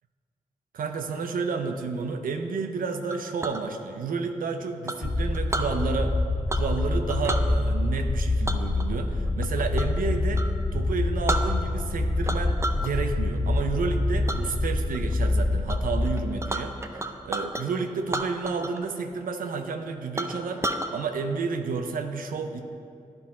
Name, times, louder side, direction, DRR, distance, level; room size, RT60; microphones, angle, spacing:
voice 1, 0.7-6.2 6.5-10.4 10.7-20.6 20.9-22.6, right 5 dB, 75° right, 6 dB, 0.6 m, -31 dB
Chink clink, 3.1-3.6 4.9-5.7 6.5-6.8 7.1-7.5 8.5-10.0 10.3-10.5 10.9-11.0 11.3-11.9 12.2-12.9 13.3-13.6 14.3-14.4 14.9-15.3 15.7-15.8 16.0-17.6 18.1-18.9 19.1-19.2 19.7-19.8 20.2-20.9, right 1 dB, 20° right, 0.6 m, -32 dB
sound 1, 5.0-16.1, left 2 dB, 30° left, 0.7 m, -26 dB
10.5 x 3.9 x 4.2 m, 2.6 s
supercardioid pair, 40°, 14 cm